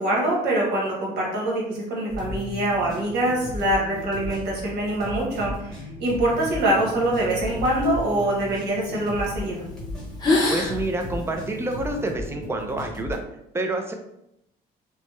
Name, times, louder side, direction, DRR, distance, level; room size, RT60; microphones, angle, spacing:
voice 1, 0.0-9.6, right 1 dB, 75° right, -3 dB, 1.2 m, -24 dB
sound 1, 2.1-13.2, left 1 dB, 5° left, 1.0 m, -36 dB
sound 2, 6.2-8.9 9.5-9.8 10.0-12.0, left 2 dB, 25° left, 0.7 m, -29 dB
voice 2, 10.5-13.2 13.5-13.9, right 2 dB, 15° right, 4 dB, 0.4 m, -28 dB
3.0 x 2.1 x 3.0 m, 0.81 s
cardioid pair, 110°, 17 cm